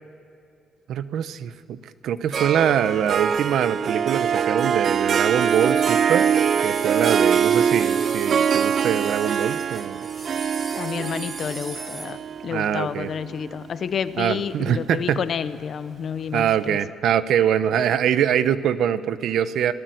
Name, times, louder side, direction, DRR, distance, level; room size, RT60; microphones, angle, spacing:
voice 1, 0.9-1.8 2.0-6.3 6.6-10.1 12.5-13.1 14.2-15.2 16.3-19.7, right 9 dB, 75° right, 1.0 m, -23 dB
Harp, 2.3-13.7, right 7 dB, 55° right, 0.5 m, -23 dB
sound 1, 5.4-12.1, right 2 dB, 35° right, 4.5 m, -38 dB
voice 2, 10.8-16.8, left 7 dB, 55° left, 1.0 m, -29 dB
27.0 x 18.5 x 7.9 m
cardioid pair, 90°, 0 cm